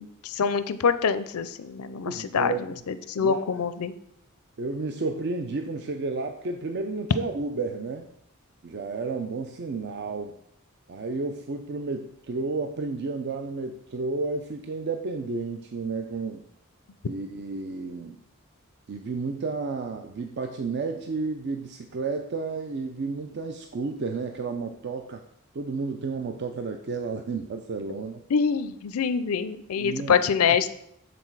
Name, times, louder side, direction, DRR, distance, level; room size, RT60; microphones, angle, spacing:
voice 1, 0.0-3.9 28.3-30.7, left 6 dB, 80° left, 13 dB, 0.5 m, -25 dB
voice 2, 2.0-2.8 3.2-3.5 4.6-8.1 8.6-10.4 10.9-16.4 17.1-18.2 18.9-25.2 25.5-28.2 29.8-30.2, right 3 dB, 50° right, 5 dB, 0.4 m, -32 dB
7.7 x 4.0 x 4.6 m, 0.73 s
head